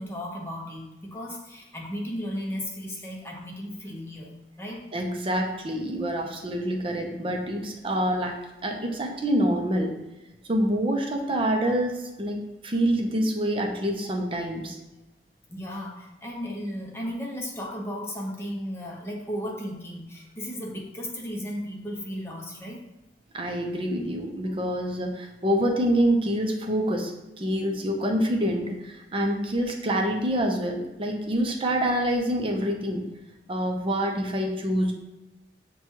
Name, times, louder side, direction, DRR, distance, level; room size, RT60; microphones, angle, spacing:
voice 1, 0.0-4.8 15.5-22.8, equal, 15° left, -2 dB, 0.7 m, -35 dB
voice 2, 4.9-8.4 8.6-9.9 10.5-14.8 23.3-27.1 27.4-33.0 33.5-34.9, equal, 30° right, 2 dB, 0.5 m, -26 dB
5.9 x 2.3 x 2.9 m, 0.99 s
head